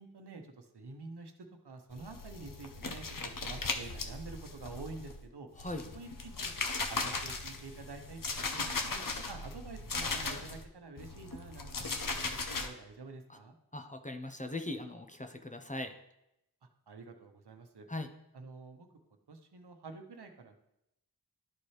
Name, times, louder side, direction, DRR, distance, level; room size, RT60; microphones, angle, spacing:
voice 1, 0.0-1.3 1.6-5.5 5.9-13.5 16.9-17.9 18.3-18.9 19.3-20.6, right 3 dB, 75° right, 5 dB, 1.0 m, -48 dB
sound 1, 1.9-5.2 5.6-10.6 11.0-12.7, left 3 dB, 55° left, 0.9 m, -38 dB
voice 2, 13.7-15.9 17.9-18.1, left 2 dB, 20° left, 6 dB, 0.7 m, -39 dB
12.0 x 4.3 x 3.2 m, 0.83 s
wide cardioid pair, 65°, 40 cm